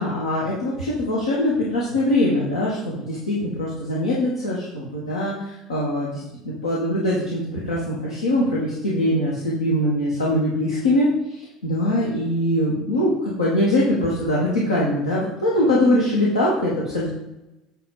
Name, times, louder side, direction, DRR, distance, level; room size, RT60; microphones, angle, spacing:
voice 1, 0.0-6.1 6.4-17.1, left 1 dB, 80° left, -6 dB, 1.4 m, -22 dB
8.4 x 3.6 x 5.3 m, 0.98 s
figure-of-eight pair, 70°, 2 cm